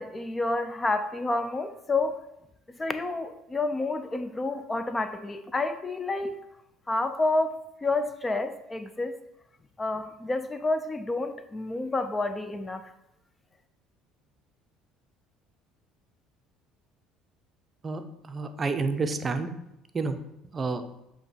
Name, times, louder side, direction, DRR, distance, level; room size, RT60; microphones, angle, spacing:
voice 1, 0.0-2.2 2.8-6.4 6.9-9.1 9.8-12.8, left 2 dB, 20° left, 10 dB, 0.4 m, -29 dB
voice 2, 17.8-19.5 19.9-20.2 20.5-20.8, right 4 dB, 30° right, 8 dB, 0.6 m, -29 dB
7.6 x 2.9 x 4.5 m, 0.86 s
hypercardioid pair, 70°, 0 cm